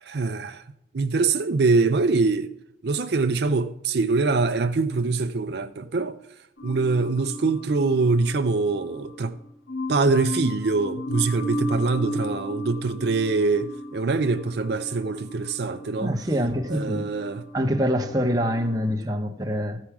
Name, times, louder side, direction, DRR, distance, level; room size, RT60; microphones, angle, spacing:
voice 1, 0.0-0.6 0.9-2.5 2.8-6.2 6.6-9.4 9.9-16.2 16.7-17.4, right 3 dB, 60° right, 0.5 m, -24 dB
sound 1, 6.6-18.8, left 1 dB, 85° left, 1.7 m, -35 dB
voice 2, 16.0-17.1 17.5-19.8, equal, 20° right, 1.0 m, -25 dB
14.5 x 4.9 x 5.9 m
head